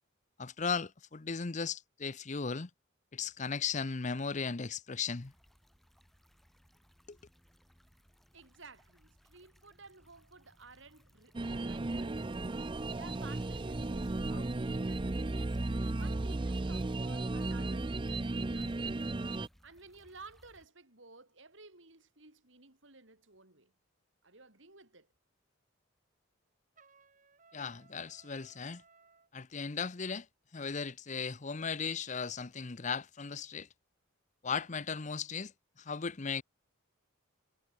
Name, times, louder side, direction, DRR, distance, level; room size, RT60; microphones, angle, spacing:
voice 1, 0.4-2.7 3.1-5.3 7.1-7.2 27.5-28.8 29.3-30.3 30.5-33.7 34.4-35.5 35.8-36.4, left 5 dB, 35° left, 0.7 m, -36 dB
sound 1, 5.1-20.7, equal, ahead, 5.6 m, -65 dB
voice 2, 8.3-12.3 12.9-15.4 15.9-19.0 19.6-23.7 24.2-25.1, right 4 dB, 65° right, 4.3 m, -55 dB
sound 2, 11.3-19.5, right 2 dB, 25° right, 0.5 m, -35 dB
Trumpet, 26.8-29.3, right 4 dB, 40° right, 5.3 m, -63 dB
head